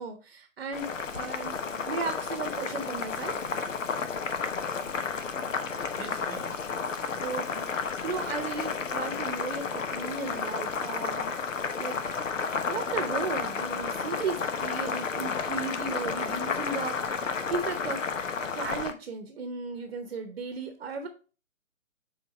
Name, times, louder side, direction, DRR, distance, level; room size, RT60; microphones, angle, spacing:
voice 1, 0.0-1.6 1.9-3.3 7.2-11.5 11.8-12.0 12.7-18.1 18.5-21.1, right 4 dB, 45° right, 7 dB, 0.9 m, -35 dB
Boiling, 0.7-18.9, left 5 dB, 65° left, 1.0 m, -32 dB
voice 2, 5.6-6.6 19.8-19.9 20.8-20.9, right 3 dB, 15° right, 4 dB, 1.3 m, -48 dB
7.0 x 4.0 x 4.2 m, 0.35 s
figure-of-eight pair, 135°, 41 cm